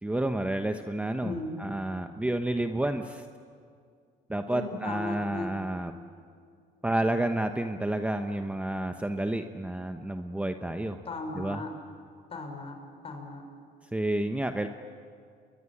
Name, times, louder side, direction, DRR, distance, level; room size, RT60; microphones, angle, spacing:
voice 1, 0.0-3.3 4.3-5.9 6.8-11.0 11.3-11.7 13.9-14.7, right 1 dB, 10° right, 6 dB, 1.0 m, -30 dB
voice 2, 1.2-1.5 4.5-5.6 11.0-11.7 12.3-12.7 13.0-13.4, left 2 dB, 35° left, 5 dB, 6.0 m, -36 dB
30.0 x 22.5 x 8.6 m, 2.2 s
cardioid pair, 110°, 17 cm